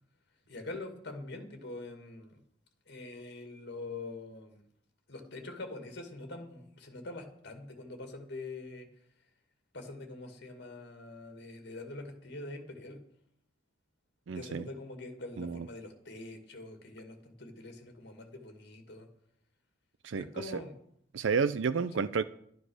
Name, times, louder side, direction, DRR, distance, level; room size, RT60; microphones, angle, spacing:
voice 1, 0.5-2.4 2.9-4.6 5.1-8.9 9.7-13.0 14.3-19.1 20.2-20.7, left 2 dB, 60° left, 5 dB, 2.2 m, -44 dB
voice 2, 14.3-14.7 15.4-15.7 20.0-20.6 21.1-22.2, right 5 dB, 80° right, 13 dB, 0.5 m, -31 dB
11.5 x 10.0 x 6.4 m, 0.69 s
head